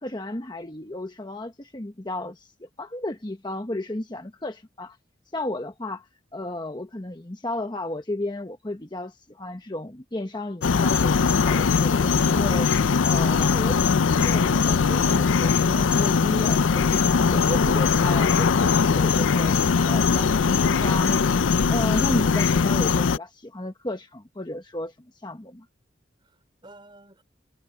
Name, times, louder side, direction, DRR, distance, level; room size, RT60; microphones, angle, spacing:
voice 1, 0.0-5.0 5.3-6.1 6.3-12.7 13.0-17.0 17.3-19.6 19.8-21.2 21.7-24.9 25.2-25.6, left 1 dB, 25° left, 1.1 m, -33 dB
sound 1, 10.6-23.2, left 5 dB, 85° left, 0.5 m, -20 dB
voice 2, 17.1-17.6 26.2-27.2, right 1 dB, 25° right, 4.9 m, -48 dB
head